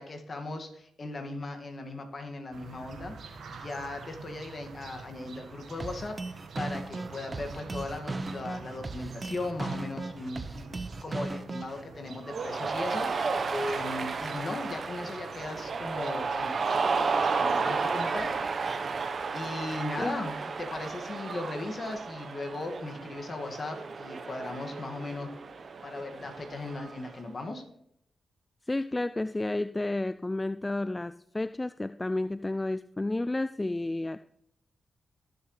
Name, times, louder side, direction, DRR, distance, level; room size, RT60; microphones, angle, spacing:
voice 1, 0.0-10.7 11.0-18.7 19.3-25.3 25.8-27.6, left 2 dB, 50° left, 4 dB, 1.9 m, -38 dB
sound 1, 2.5-19.1, right 4 dB, 75° right, 1.5 m, -48 dB
sound 2, 5.8-11.8, right 3 dB, 40° right, 1.0 m, -36 dB
Cheering, 12.3-27.1, right 4 dB, 60° right, 1.0 m, -32 dB
voice 2, 28.7-34.2, left 2 dB, 25° left, 13 dB, 0.3 m, -31 dB
18.5 x 6.8 x 3.2 m, 0.71 s
supercardioid pair, 40°, 0 cm